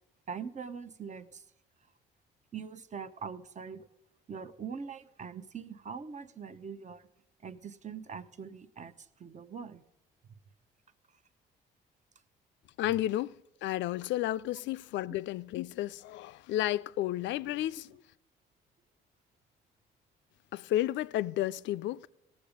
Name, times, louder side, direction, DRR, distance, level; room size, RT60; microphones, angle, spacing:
voice 1, 0.3-1.4 2.5-3.9 4.3-7.1 7.4-9.8, right 6 dB, 40° right, 0.8 m, -42 dB
voice 2, 12.8-13.3 13.6-18.0 20.5-22.1, left 14 dB, 70° left, 0.4 m, -32 dB
17.5 x 7.2 x 5.1 m
supercardioid pair, 65°, 19 cm